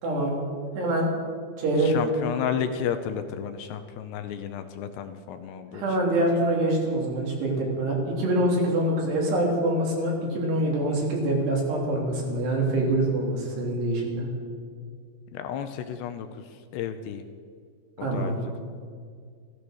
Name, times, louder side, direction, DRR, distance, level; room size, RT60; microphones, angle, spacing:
voice 1, 0.0-0.4 0.7-1.1 1.6-1.9 5.7-14.3 18.0-18.4, right 1 dB, 65° right, -1 dB, 5.0 m, -25 dB
voice 2, 1.8-5.8 15.3-16.5 16.7-17.2 18.0-18.5, left 8 dB, 80° left, 9 dB, 2.7 m, -32 dB
15.0 x 14.0 x 6.4 m, 2.1 s
omnidirectional pair, 5.2 m